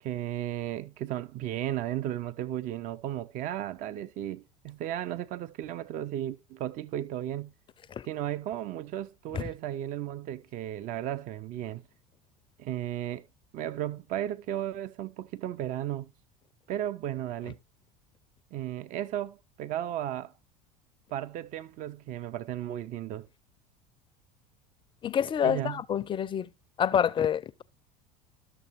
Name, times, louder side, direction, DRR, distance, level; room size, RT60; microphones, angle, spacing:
voice 1, 0.0-7.5 8.0-11.8 12.6-13.2 13.5-16.1 16.7-17.6 18.5-20.3 21.1-23.3 25.4-25.8, right 12 dB, 45° right, 0.4 m, -34 dB
voice 2, 25.0-26.5 26.8-27.6, left 8 dB, 25° left, 0.4 m, -27 dB
12.5 x 6.6 x 3.0 m
hypercardioid pair, 75°, 20 cm